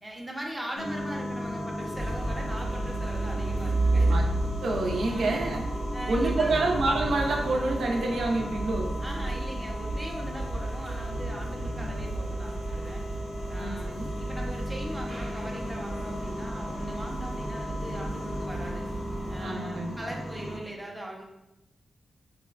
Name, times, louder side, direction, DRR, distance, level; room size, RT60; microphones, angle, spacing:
voice 1, 0.0-4.2 5.1-5.4 5.9-6.7 9.0-13.0 13.5-13.9 14.2-18.9 19.3-21.2, right 1 dB, 5° right, -2 dB, 0.6 m, -40 dB
sound 1, 0.7-20.6, left 1 dB, 85° left, 1.2 m, -37 dB
sound 2, 2.0-19.5, right 2 dB, 45° right, 0.8 m, -32 dB
voice 2, 4.6-5.6 6.1-8.9 13.5-14.1 19.4-20.2, right 2 dB, 75° right, 0 dB, 0.5 m, -28 dB
sound 3, 6.1-12.1, left 2 dB, 60° left, 0.6 m, -45 dB
4.6 x 2.1 x 2.4 m, 0.93 s
wide cardioid pair, 105°, 0 cm